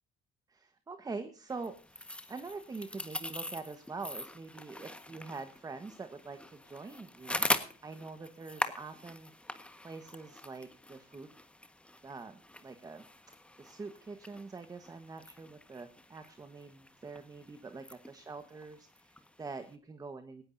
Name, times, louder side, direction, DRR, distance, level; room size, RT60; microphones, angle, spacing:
voice 1, 0.5-9.3 9.8-11.3 12.0-13.0 13.6-20.4, right 4 dB, 20° right, 9 dB, 1.2 m, -45 dB
sound 1, 1.5-19.7, left 1 dB, 5° left, 1.4 m, -42 dB
18.5 x 15.5 x 2.6 m, 0.41 s
cardioid pair, 110°, 17 cm